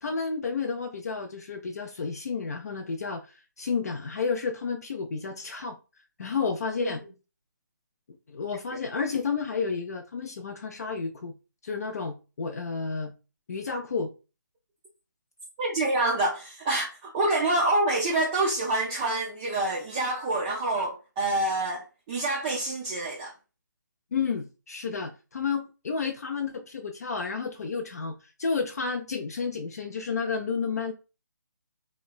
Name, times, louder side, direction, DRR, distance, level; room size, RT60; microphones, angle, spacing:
voice 1, 0.0-5.8 6.2-7.0 8.3-11.3 11.6-13.1 13.5-14.1 24.1-30.9, left 5 dB, 55° left, 0.4 m, -31 dB
voice 2, 15.6-23.3, right 2 dB, 20° right, 0.3 m, -27 dB
2.9 x 2.1 x 2.3 m
figure-of-eight pair, 145°, 10 cm